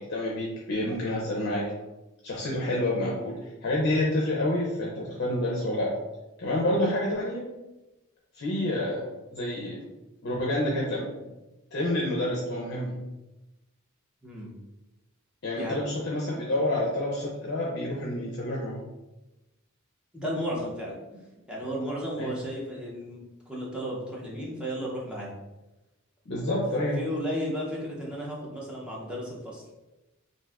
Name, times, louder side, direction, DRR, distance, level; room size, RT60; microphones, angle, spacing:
voice 1, 0.0-1.7 2.2-5.9 6.4-7.4 8.3-9.8 10.2-11.1 11.7-13.0 15.4-18.8 22.2-22.3 26.3-27.0, left 1 dB, 50° left, -4 dB, 0.5 m, -28 dB
voice 2, 14.2-14.5 15.6-15.8 20.1-21.0 21.5-25.3 26.9-29.6, equal, 5° right, -5 dB, 0.6 m, -34 dB
2.6 x 2.4 x 3.3 m, 1.0 s
head